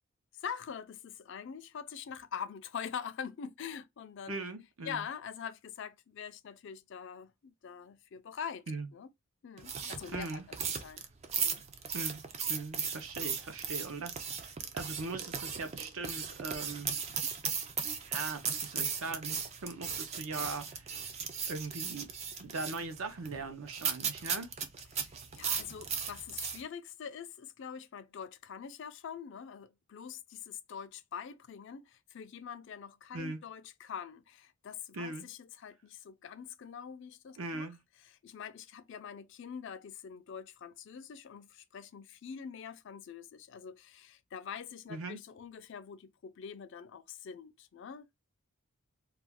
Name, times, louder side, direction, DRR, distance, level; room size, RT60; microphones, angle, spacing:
voice 1, 0.4-4.4 4.9-8.6 8.9-9.1 9.4-11.1 11.4-11.6 24.9-37.7 38.0-48.2, left 7 dB, 55° left, 0.4 m, -44 dB
voice 2, 4.3-5.1 8.7-8.9 10.1-10.4 11.9-12.2 12.5-14.3 14.7-16.9 18.0-21.1 21.5-22.1 22.4-24.5 33.1-33.4 34.9-35.2 37.4-37.8 44.9-45.2, right 3 dB, 70° right, 0.6 m, -40 dB
sound 1, 9.6-26.6, right 6 dB, 30° right, 0.3 m, -37 dB
2.3 x 2.3 x 3.4 m
head